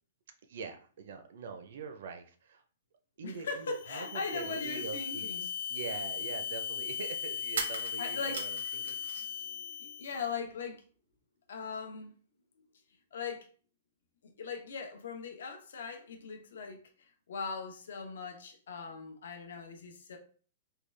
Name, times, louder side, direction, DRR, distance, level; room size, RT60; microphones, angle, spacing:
voice 1, 0.5-2.6 3.2-9.2, right 5 dB, 50° right, 0.5 m, -44 dB
voice 2, 3.2-5.5 8.0-8.6 9.3-10.8 11.5-12.1 13.1-13.5 14.4-16.8 17.3-20.2, left 5 dB, 70° left, 0.7 m, -40 dB
sound 1, 3.7-10.3, left 7 dB, 45° left, 0.3 m, -38 dB
sound 2, 5.2-5.3 7.5-9.4 9.7-10.6, right 5 dB, 85° right, 0.8 m, -40 dB
3.6 x 2.3 x 3.2 m
hypercardioid pair, 180°, 0 cm